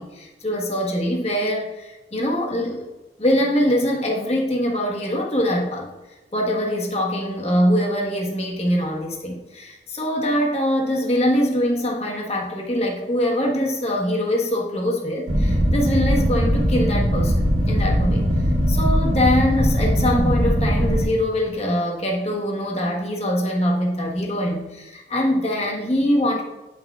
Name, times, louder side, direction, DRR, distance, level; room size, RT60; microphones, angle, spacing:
voice 1, 0.0-2.9 3.2-5.9 6.3-18.2 18.7-26.4, equal, 35° left, -2 dB, 1.3 m, -23 dB
sound 1, 15.3-21.0, equal, 80° right, 1.7 m, -20 dB
9.3 x 6.0 x 2.3 m, 1.1 s
head